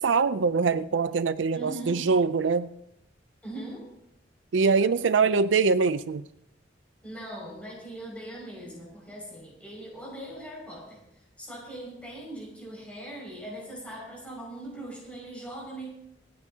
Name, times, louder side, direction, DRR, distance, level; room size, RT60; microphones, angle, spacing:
voice 1, 0.0-2.7 4.5-6.3, right 4 dB, 75° right, 14 dB, 0.5 m, -23 dB
voice 2, 1.5-2.1 3.4-3.9 7.0-11.0 11.4-15.9, right 1 dB, 5° left, -3 dB, 5.9 m, -40 dB
27.0 x 9.6 x 2.9 m, 0.82 s
head